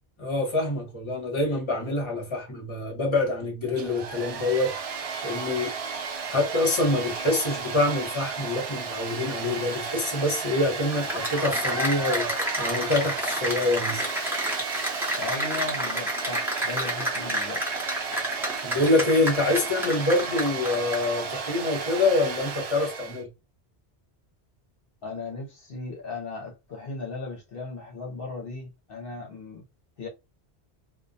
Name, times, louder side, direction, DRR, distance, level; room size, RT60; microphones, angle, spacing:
voice 1, 0.2-4.7 5.2-5.7 6.3-12.3 12.6-14.0 18.6-23.3, left 2 dB, 30° left, 0.9 m, -26 dB
Domestic sounds home sounds, 3.6-23.2, right 5 dB, 55° right, 0.4 m, -34 dB
Cheering / Applause, 10.9-21.2, equal, ahead, 0.6 m, -30 dB
voice 2, 15.2-17.6 25.0-29.6 30.0-30.1, left 3 dB, 65° left, 0.8 m, -36 dB
2.2 x 2.1 x 2.6 m
omnidirectional pair, 1.1 m